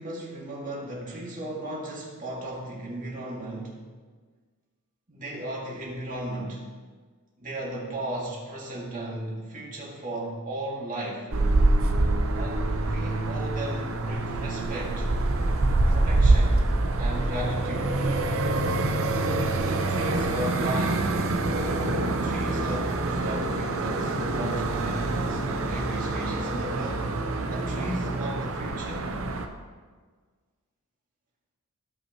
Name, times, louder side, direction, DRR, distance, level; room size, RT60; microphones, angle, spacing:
voice 1, 0.0-3.8 5.1-6.7 7.4-11.3 12.3-15.1 15.9-16.7 17.0-18.0 19.7-21.2 22.2-27.1 27.5-29.1, right 1 dB, 35° right, -4 dB, 2.2 m, -36 dB
sound 1, 11.3-29.5, right 2 dB, 65° right, 0.8 m, -25 dB
16.0 x 5.5 x 3.1 m, 1.5 s
head